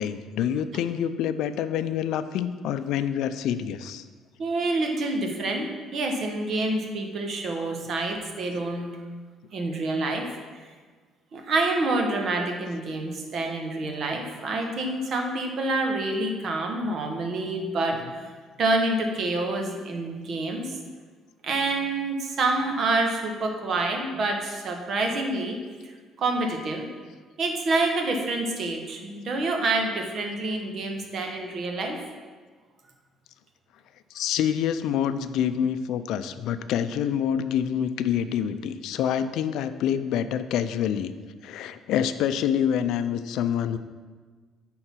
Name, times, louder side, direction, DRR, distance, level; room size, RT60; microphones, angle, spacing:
voice 1, 0.0-4.1 34.1-41.1 41.4-43.8, left 9 dB, 80° left, 11 dB, 0.4 m, -27 dB
voice 2, 4.4-9.0 9.5-10.7 11.3-18.3 18.6-20.7 21.4-25.9 26.2-26.9 27.4-32.0, right 2 dB, 50° right, 3 dB, 1.2 m, -27 dB
9.0 x 3.8 x 5.8 m, 1.5 s
cardioid pair, 120°, 0 cm